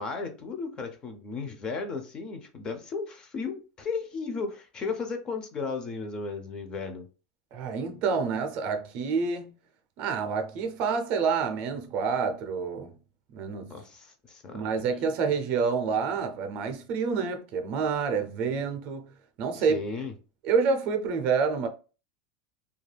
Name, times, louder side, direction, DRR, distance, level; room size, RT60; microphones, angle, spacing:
voice 1, 0.0-7.1 13.7-14.7 19.5-20.1, left 4 dB, 20° left, 0.4 m, -35 dB
voice 2, 7.5-9.5 10.0-12.9 13.3-13.8 14.5-19.1 19.4-19.8 20.4-21.7, right 5 dB, 40° right, 0.4 m, -28 dB
2.3 x 2.3 x 3.2 m
supercardioid pair, 165°, 4 cm